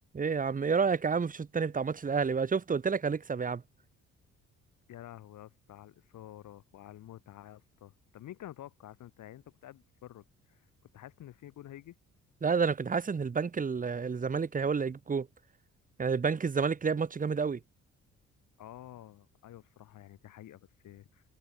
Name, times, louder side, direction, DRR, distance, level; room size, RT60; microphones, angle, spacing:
voice 1, 0.1-3.6 12.4-15.3 16.0-17.6, right 5 dB, 25° right, 1.2 m, -29 dB
voice 2, 4.9-10.7 10.9-12.0 18.6-21.2, left 13 dB, 80° left, 7.7 m, -50 dB
cardioid pair, 90°, 30 cm